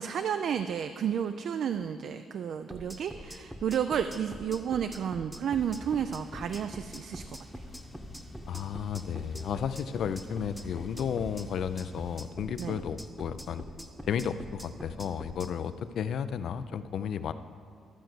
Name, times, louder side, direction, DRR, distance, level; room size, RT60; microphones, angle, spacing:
voice 1, 0.0-7.2 7.5-7.6 12.6-12.8, right 8 dB, 65° right, 9 dB, 0.3 m, -31 dB
sound 1, 2.7-15.5, equal, 5° right, 0.9 m, -44 dB
sound 2, 5.5-12.3, left 2 dB, 25° left, 0.9 m, -49 dB
voice 2, 8.5-13.6 14.1-17.3, left 7 dB, 70° left, 12 dB, 0.4 m, -33 dB
12.5 x 4.5 x 7.9 m, 2.3 s
cardioid pair, 90°, 0 cm